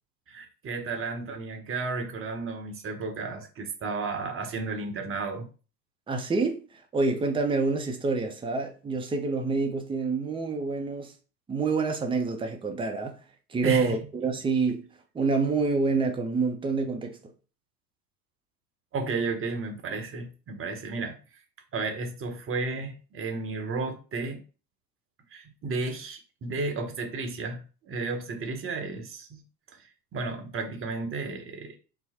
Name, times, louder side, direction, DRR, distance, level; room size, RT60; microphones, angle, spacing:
voice 1, 0.3-5.5 13.6-14.0 18.9-21.2 21.7-24.4 25.3-29.4 29.8-31.8, right 3 dB, 25° right, 0.9 m, -33 dB
voice 2, 6.1-6.6 6.9-11.1 11.5-13.2 13.5-14.8 15.1-17.2, right 4 dB, 10° right, 0.6 m, -27 dB
4.1 x 2.0 x 4.2 m
hypercardioid pair, 85°, 49 cm